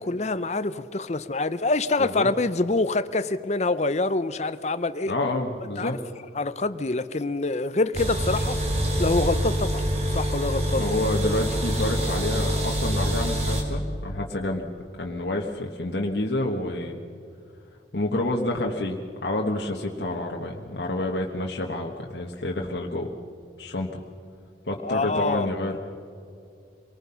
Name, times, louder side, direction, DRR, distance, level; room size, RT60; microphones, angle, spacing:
voice 1, 0.0-5.1 5.8-6.0 6.3-8.6 9.0-9.8 10.1-10.8 24.8-25.5, left 3 dB, 40° left, 13 dB, 0.7 m, -26 dB
voice 2, 5.1-6.0 10.8-14.7 15.0-17.0 17.9-23.1 23.6-24.0 24.7-25.8, left 1 dB, 70° left, 0 dB, 1.4 m, -28 dB
sound 1, 7.9-13.6, equal, 35° right, 2.9 m, -25 dB
25.5 x 19.0 x 5.7 m, 2.5 s
head